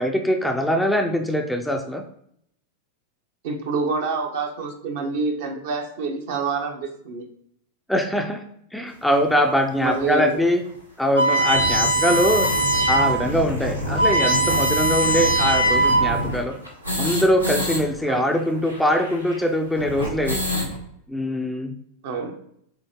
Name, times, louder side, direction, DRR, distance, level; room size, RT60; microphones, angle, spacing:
voice 1, 0.0-2.0 7.9-8.4 8.7-10.6 11.0-12.5 12.9-16.6 17.0-20.4 21.1-21.7, equal, ahead, 3 dB, 0.4 m, -22 dB
voice 2, 3.4-7.3 9.8-10.4 18.1-18.4 22.0-22.4, right 4 dB, 55° right, 3 dB, 0.8 m, -27 dB
sound 1, 9.1-9.2 9.9-10.0 10.3-10.4 10.6-10.7 11.1-17.8 18.1-18.2 18.4-20.7, equal, 90° right, 1.1 m, -29 dB
sound 2, 11.2-13.2 13.6-13.7 13.9-16.3, right 1 dB, 85° left, 1.3 m, -20 dB
6.7 x 2.7 x 2.9 m, 0.70 s
figure-of-eight pair, 90°, 0 cm